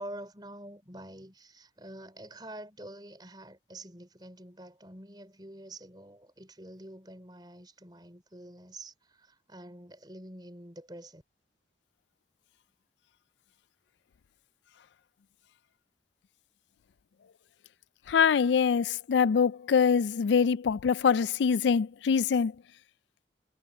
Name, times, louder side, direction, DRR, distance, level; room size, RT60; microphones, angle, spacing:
voice 1, 0.0-11.2, right 1 dB, 25° right, 4.2 m, -47 dB
voice 2, 18.1-22.5, left 6 dB, 85° left, 0.4 m, -24 dB
head